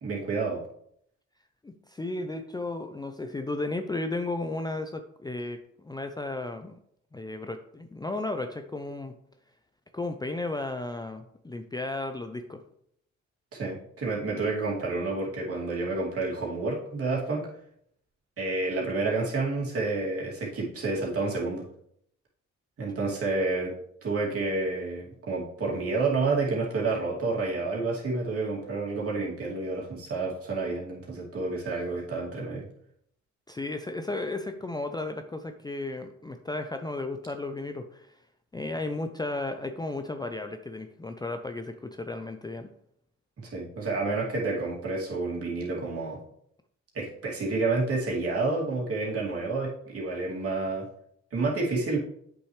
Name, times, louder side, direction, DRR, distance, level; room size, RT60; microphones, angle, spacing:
voice 1, 0.0-0.6 13.5-17.5 18.4-21.6 22.8-23.7 24.0-32.7 43.4-46.2 46.9-50.9 51.3-52.0, right 3 dB, 50° right, -4 dB, 2.7 m, -29 dB
voice 2, 1.6-6.7 7.1-9.1 9.9-12.6 33.5-38.1 38.5-42.7, left 2 dB, 15° left, 7 dB, 0.5 m, -34 dB
8.1 x 6.2 x 3.3 m, 0.71 s
cardioid pair, 90°, 30 cm